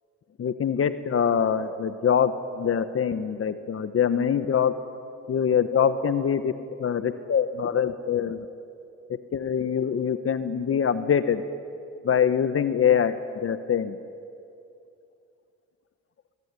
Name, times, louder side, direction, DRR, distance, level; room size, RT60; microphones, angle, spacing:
voice 1, 0.4-4.7 5.3-6.5 6.8-8.4 9.3-11.4 12.0-13.2 13.4-14.0, left 8 dB, 50° left, 11 dB, 1.2 m, -24 dB
22.0 x 22.0 x 9.8 m, 2.6 s
cardioid pair, 90°, 30 cm